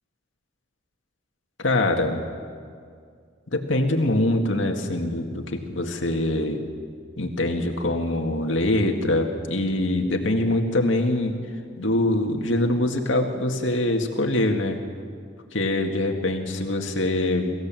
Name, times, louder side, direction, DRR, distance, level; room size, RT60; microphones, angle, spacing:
voice 1, 1.6-2.3 3.5-6.6 7.2-11.4 11.8-14.8 15.5-17.5, left 1 dB, 80° left, 3 dB, 2.1 m, -24 dB
25.0 x 16.0 x 7.7 m, 2.1 s
head